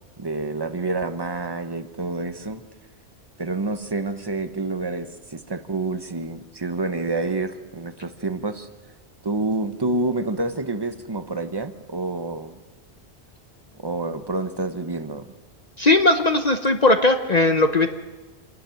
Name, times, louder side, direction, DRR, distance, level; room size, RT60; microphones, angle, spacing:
voice 1, 0.2-2.6 3.4-8.7 9.2-12.6 13.8-15.3, right 3 dB, 25° right, 9 dB, 1.1 m, -28 dB
voice 2, 15.8-17.9, left 2 dB, 40° left, 6 dB, 1.1 m, -18 dB
28.0 x 11.5 x 9.3 m, 1.2 s
omnidirectional pair, 1.1 m